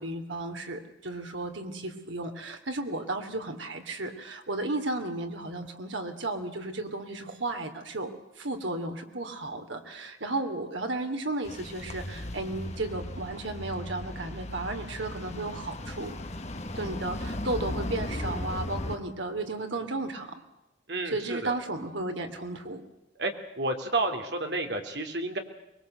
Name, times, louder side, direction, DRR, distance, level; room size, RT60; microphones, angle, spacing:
voice 1, 0.0-16.1 16.7-20.4 21.1-22.8, right 2 dB, 80° right, 5 dB, 3.1 m, -34 dB
sound 1, 11.4-19.0, left 1 dB, 35° left, 1.6 m, -36 dB
voice 2, 20.9-21.5 23.2-25.4, right 2 dB, 60° right, 5 dB, 3.2 m, -31 dB
24.0 x 21.5 x 8.0 m, 0.93 s
head